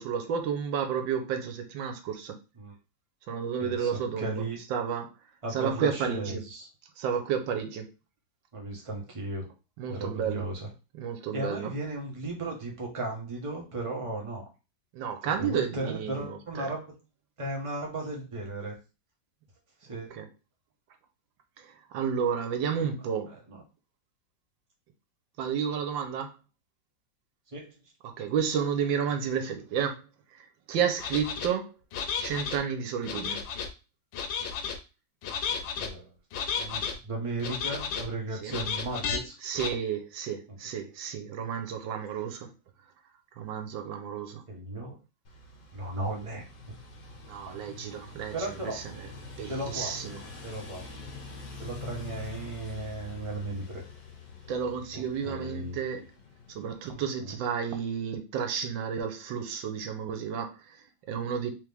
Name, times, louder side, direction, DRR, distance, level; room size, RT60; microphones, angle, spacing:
voice 1, 0.0-2.4 3.3-4.4 4.7-5.1 5.5-6.4 7.0-7.9 9.8-10.4 11.0-11.7 14.9-16.7 19.9-20.3 21.6-23.4 25.4-26.3 28.0-30.0 30.3-31.7 32.2-33.4 38.4-38.5 39.4-42.5 43.4-44.4 47.3-48.3 48.7-49.1 49.4-50.2 54.5-56.1 56.5-61.5, right 7 dB, 85° right, 1.5 m, -31 dB
voice 2, 3.6-4.6 5.4-6.7 8.5-9.4 9.9-10.7 11.3-14.5 15.4-17.0 17.4-18.8 19.9-20.1 22.8-22.9 23.5-23.6 27.5-27.8 35.8-36.1 36.6-39.4 44.5-45.0 45.7-46.4 48.3-48.9 49.4-50.0 50.4-50.9 51.6-53.8 54.9-55.8 56.9-57.3, right 2 dB, 25° right, 0.9 m, -36 dB
sound 1, 31.0-31.5 31.9-32.6 33.0-33.7 34.1-34.8 35.2-35.9 36.3-36.9 37.4-38.1 38.5-39.2 39.6-39.7, left 6 dB, 85° left, 1.4 m, -33 dB
sound 2, 45.2-57.0, left 4 dB, 65° left, 1.7 m, -46 dB
3.6 x 3.3 x 3.4 m
omnidirectional pair, 2.0 m